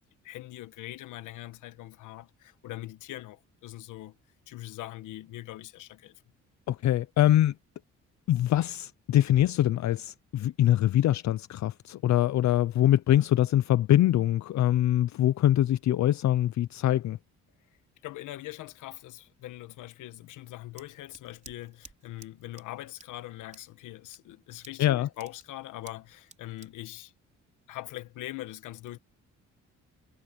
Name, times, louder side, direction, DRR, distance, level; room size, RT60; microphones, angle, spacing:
voice 1, 0.2-4.1 4.5-6.1 18.0-27.1 27.7-29.0, left 15 dB, 90° left, 1.5 m, -42 dB
voice 2, 6.7-7.5 8.3-17.2 24.8-25.1, left 12 dB, 65° left, 0.7 m, -24 dB
Scissors, 20.2-28.0, right 3 dB, 25° right, 3.8 m, -56 dB
cardioid pair, 90°, 30 cm